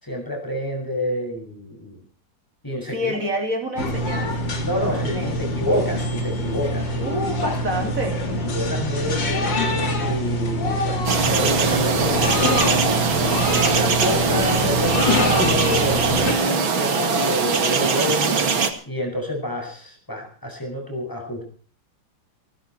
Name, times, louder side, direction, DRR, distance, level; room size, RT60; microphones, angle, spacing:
voice 1, 0.0-2.0 2.6-3.1 4.6-7.2 8.5-9.5 9.9-13.0 13.5-18.5 18.9-21.5, left 1 dB, 10° left, 2 dB, 6.9 m, -28 dB
voice 2, 2.8-4.4 4.8-5.4 7.0-8.2, right 1 dB, 40° right, 4 dB, 3.8 m, -28 dB
sound 1, 3.8-16.3, left 1 dB, 65° left, 3.5 m, -24 dB
sound 2, 11.1-18.7, right 5 dB, 80° right, 2.9 m, -21 dB
19.5 x 15.0 x 4.6 m, 0.42 s
omnidirectional pair, 2.1 m